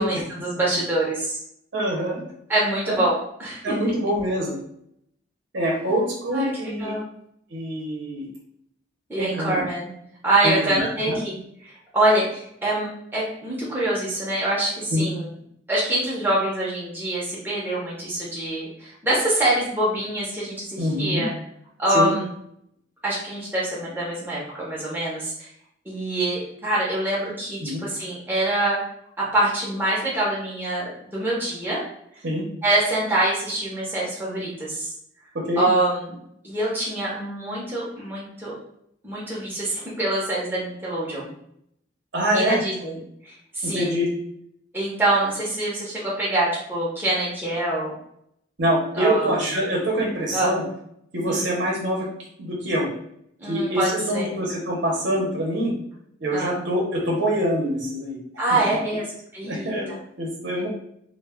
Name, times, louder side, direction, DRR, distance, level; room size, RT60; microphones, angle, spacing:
voice 1, 0.0-1.4 2.5-3.8 5.9-6.0 6.3-6.5 6.8-7.1 9.1-9.9 10.2-15.3 15.7-21.3 21.8-22.3 23.0-25.5 25.9-28.8 29.2-31.8 32.6-34.9 35.6-36.1 36.4-38.5 39.0-41.3 42.3-44.0 44.7-47.9 48.9-49.4 50.3-50.5 51.2-51.5 53.4-54.4 56.3-56.6 58.4-59.1 59.3-60.0, right 1 dB, 10° right, -6 dB, 0.6 m, -25 dB
voice 2, 1.7-2.2 2.9-3.0 3.6-4.6 5.5-6.9 7.5-8.3 9.2-9.6 10.4-11.2 14.9-15.1 20.8-21.2 21.9-22.1 27.6-27.8 32.2-32.4 35.3-35.7 42.1-42.6 43.6-44.1 48.6-50.6 51.1-52.1 52.4-52.9 53.5-55.7 56.2-58.2 59.4-60.7, equal, 75° right, -2 dB, 0.7 m, -25 dB
2.2 x 2.1 x 3.4 m, 0.73 s
head